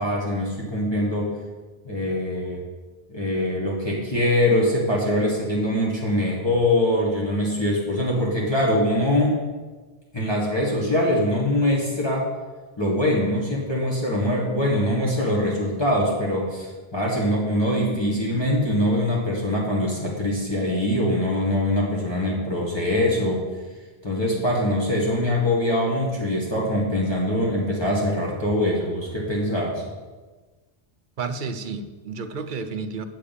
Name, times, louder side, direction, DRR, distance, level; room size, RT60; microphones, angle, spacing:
voice 1, 0.0-1.3 1.8-2.6 3.1-9.4 10.1-12.3 12.8-23.4 24.0-29.8, left 1 dB, 25° left, -4 dB, 1.9 m, -23 dB
voice 2, 31.2-33.0, right 4 dB, 55° right, 10 dB, 0.8 m, -31 dB
7.9 x 6.7 x 7.2 m, 1.3 s
omnidirectional pair, 1.1 m